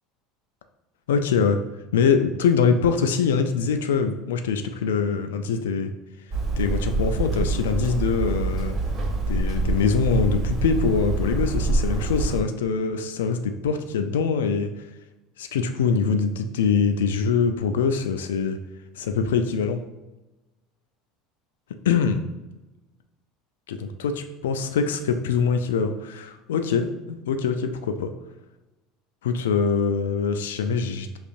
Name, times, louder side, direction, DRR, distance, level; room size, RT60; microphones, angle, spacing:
voice 1, 1.1-1.6 1.9-5.9 6.6-8.8 9.3-14.7 15.4-18.6 18.9-19.8 21.8-22.2 23.7-28.1 29.2-31.1, left 5 dB, 85° left, 7 dB, 0.3 m, -23 dB
Hammer, 6.3-12.4, right 3 dB, 40° right, 1.4 m, -25 dB
5.2 x 2.4 x 2.5 m, 1.0 s
hypercardioid pair, 85°, 0 cm